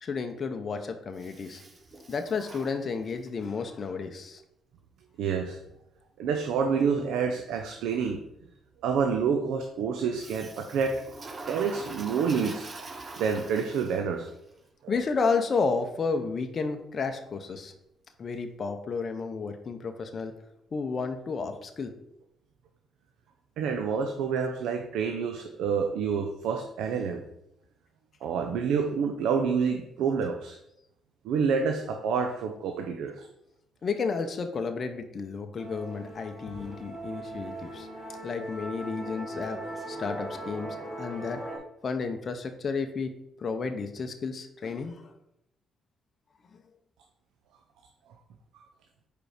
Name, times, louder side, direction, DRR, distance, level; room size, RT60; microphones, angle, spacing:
voice 1, 0.0-1.6 2.1-4.4 14.9-17.7 18.2-20.3 20.7-21.9 33.8-37.9 38.2-39.6 39.9-41.4 41.8-43.1 43.4-45.0, left 4 dB, 45° left, 6 dB, 0.7 m, -32 dB
Toilet flush, 1.2-3.4 10.2-14.3, right 3 dB, 35° right, 1.0 m, -44 dB
voice 2, 5.2-5.6 6.2-8.2 8.8-11.1 11.5-12.7 13.2-14.3 14.8-15.0 23.6-27.2 28.2-30.6 31.2-33.2, right 6 dB, 85° right, 5 dB, 0.6 m, -28 dB
Musical instrument, 35.6-41.6, right 1 dB, ahead, 1.8 m, -39 dB
5.0 x 4.5 x 5.0 m, 0.80 s
cardioid pair, 90°, 0 cm